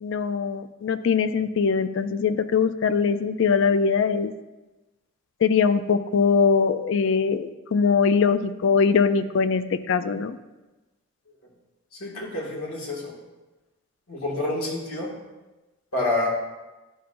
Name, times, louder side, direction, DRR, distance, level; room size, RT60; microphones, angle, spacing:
voice 1, 0.0-4.3 5.4-10.4, left 5 dB, 55° left, 12 dB, 0.3 m, -22 dB
voice 2, 12.0-13.1 14.1-15.1 15.9-16.3, left 2 dB, 80° left, -3 dB, 1.9 m, -28 dB
11.0 x 5.7 x 2.5 m, 1.1 s
head